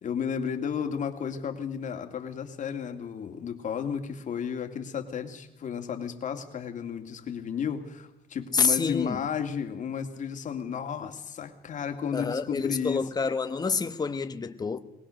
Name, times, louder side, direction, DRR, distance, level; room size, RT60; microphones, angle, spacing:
voice 1, 0.0-13.0, left 7 dB, 45° left, 2.3 m, -33 dB
voice 2, 8.5-9.2 12.1-14.8, left 5 dB, 25° left, 1.2 m, -27 dB
22.0 x 19.0 x 6.4 m
cardioid pair, 110°, 17 cm